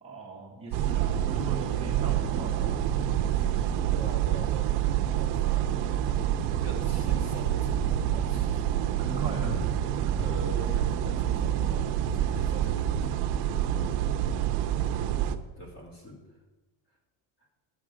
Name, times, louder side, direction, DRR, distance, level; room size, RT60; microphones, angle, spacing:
voice 1, 0.0-3.7 8.8-10.3, right 2 dB, 15° right, -4 dB, 1.3 m, -40 dB
sound 1, 0.7-15.4, right 10 dB, 75° right, 0.9 m, -27 dB
voice 2, 3.9-6.3 6.6-8.6 10.2-13.2 15.6-16.2, equal, 30° left, -1 dB, 2.9 m, -43 dB
11.5 x 9.1 x 5.0 m, 1.2 s
cardioid pair, 180°, 43 cm